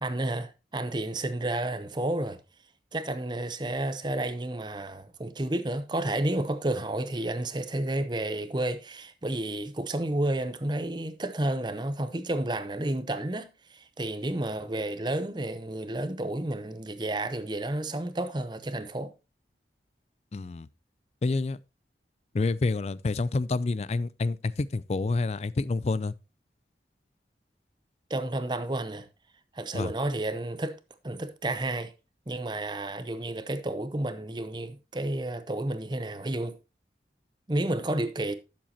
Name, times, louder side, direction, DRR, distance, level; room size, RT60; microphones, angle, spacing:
voice 1, 0.0-2.4 2.9-19.1 28.1-29.1 29.5-30.8 31.0-31.9 32.3-36.6 37.5-38.3, right 1 dB, 25° right, 0.7 m, -31 dB
voice 2, 20.3-20.7 21.2-21.6 22.3-26.1 29.7-29.9, left 3 dB, 35° left, 0.4 m, -28 dB
11.5 x 7.5 x 2.9 m
head